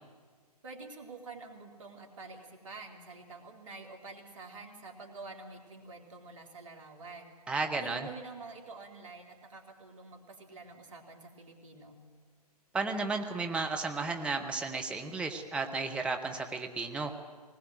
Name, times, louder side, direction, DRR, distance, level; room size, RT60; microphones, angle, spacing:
voice 1, 0.6-7.3 7.7-12.0, right 3 dB, 50° right, 3 dB, 3.4 m, -47 dB
voice 2, 7.5-8.1 12.7-17.1, right 3 dB, 5° right, 3 dB, 1.2 m, -33 dB
20.0 x 19.5 x 7.8 m, 1.6 s
figure-of-eight pair, 130°, 21 cm